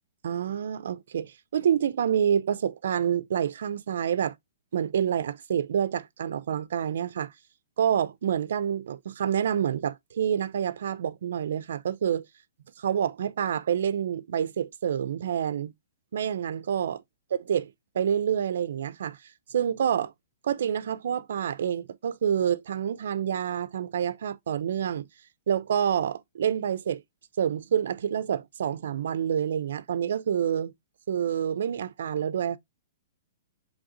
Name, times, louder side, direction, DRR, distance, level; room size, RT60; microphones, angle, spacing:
voice 1, 0.2-4.3 4.7-7.3 7.8-12.3 12.8-15.7 16.1-17.0 17.5-19.2 19.5-20.1 20.4-25.1 25.5-27.0 27.4-30.7 31.1-32.6, right 8 dB, 70° right, 0.4 m, -27 dB
4.9 x 3.2 x 2.5 m
hypercardioid pair, 165°, 0 cm